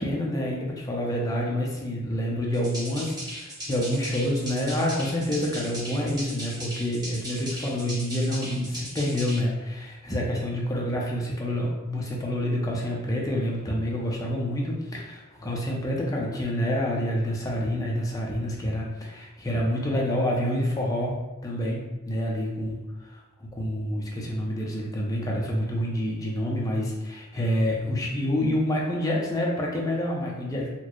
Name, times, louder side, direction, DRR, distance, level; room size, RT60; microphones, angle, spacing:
voice 1, 0.0-21.2 21.4-30.7, equal, 15° left, -2 dB, 0.5 m, -28 dB
sound 1, 2.5-9.4, equal, 20° right, 0.8 m, -37 dB
4.2 x 2.1 x 3.0 m, 1.1 s
head